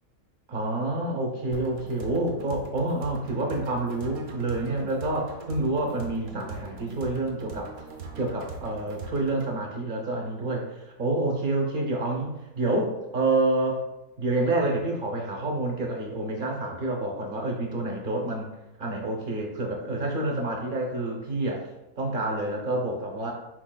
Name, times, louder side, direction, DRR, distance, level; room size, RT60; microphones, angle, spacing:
voice 1, 0.5-7.7 8.2-13.8 14.2-18.5 18.8-21.7 22.0-23.3, right 2 dB, 45° right, 0 dB, 0.7 m, -28 dB
sound 1, 1.5-9.5, right 4 dB, 90° right, 1.4 m, -41 dB
4.6 x 4.5 x 2.2 m, 0.96 s
omnidirectional pair, 1.7 m